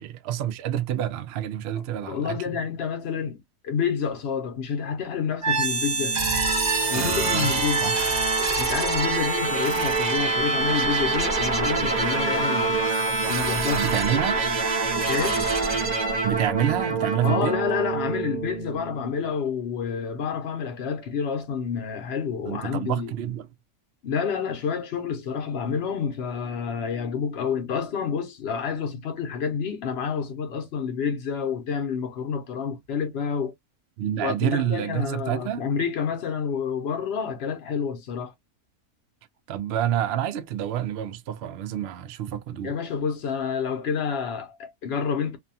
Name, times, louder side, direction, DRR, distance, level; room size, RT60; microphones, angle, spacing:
voice 1, 0.0-2.4 6.9-8.1 13.7-14.4 16.2-17.5 22.5-23.5 34.0-35.7 39.5-42.7, right 10 dB, 90° right, 0.5 m, -28 dB
voice 2, 1.7-6.2 6.9-7.9 8.6-12.8 13.3-13.9 15.1-15.5 17.2-23.1 24.0-33.5 34.2-38.3 42.6-45.4, left 6 dB, 55° left, 0.8 m, -29 dB
sound 1, 5.4-19.3, right 3 dB, 40° right, 0.6 m, -25 dB
2.6 x 2.3 x 2.6 m
omnidirectional pair, 1.6 m